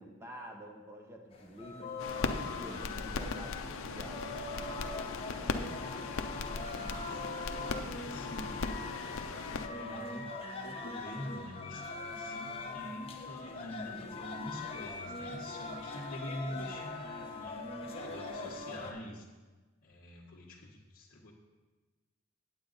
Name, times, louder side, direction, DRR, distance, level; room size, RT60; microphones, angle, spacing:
voice 1, 0.0-4.4, equal, 10° right, 2 dB, 1.0 m, -48 dB
sound 1, 1.3-18.9, left 3 dB, 25° left, 0.9 m, -42 dB
sound 2, 2.0-9.7, left 4 dB, 65° left, 0.6 m, -38 dB
voice 2, 6.3-8.7 9.5-10.3 10.6-19.2 19.8-21.3, left 1 dB, 40° left, -6 dB, 1.3 m, -46 dB
8.7 x 8.7 x 4.0 m, 1.3 s
head